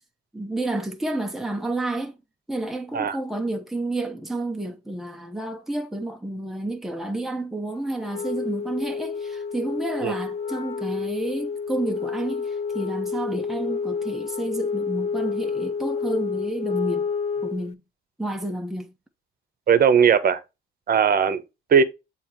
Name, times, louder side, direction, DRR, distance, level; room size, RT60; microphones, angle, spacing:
voice 1, 0.3-2.2 2.5-17.1 17.4-17.8 18.2-18.9, right 2 dB, ahead, 1.1 m, -30 dB
Wind instrument woodwind instrument, 8.0-17.7, left 5 dB, 30° left, 0.5 m, -29 dB
voice 2, 19.7-20.4 20.9-21.4 21.7-21.8, right 7 dB, 50° right, 1.0 m, -18 dB
7.1 x 3.1 x 4.5 m
cardioid pair, 90°, 20 cm